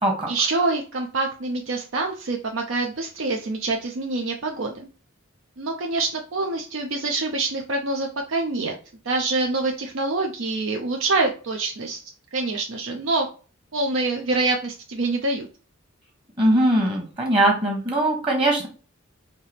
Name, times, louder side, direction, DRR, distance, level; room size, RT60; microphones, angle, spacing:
voice 1, 0.3-4.9 5.6-8.7 9.0-12.0 12.3-13.3 13.7-15.5, right 3 dB, 70° right, 2 dB, 0.6 m, -25 dB
voice 2, 16.4-18.7, right 1 dB, 25° right, 0 dB, 1.2 m, -21 dB
4.5 x 2.8 x 3.3 m, 0.36 s
head